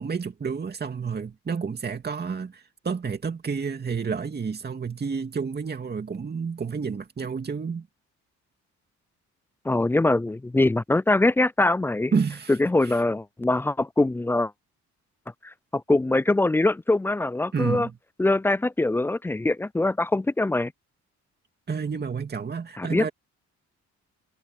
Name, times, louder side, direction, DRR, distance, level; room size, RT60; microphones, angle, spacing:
voice 1, 0.0-7.9 12.1-12.5 12.8-13.0 17.5-18.0 21.7-23.1, right 5 dB, 35° right, 2.4 m, -30 dB
voice 2, 9.7-12.1 12.5-14.5 15.4-17.9 18.2-20.7 22.8-23.1, left 2 dB, 10° left, 0.3 m, -23 dB
cardioid pair, 90°, 30 cm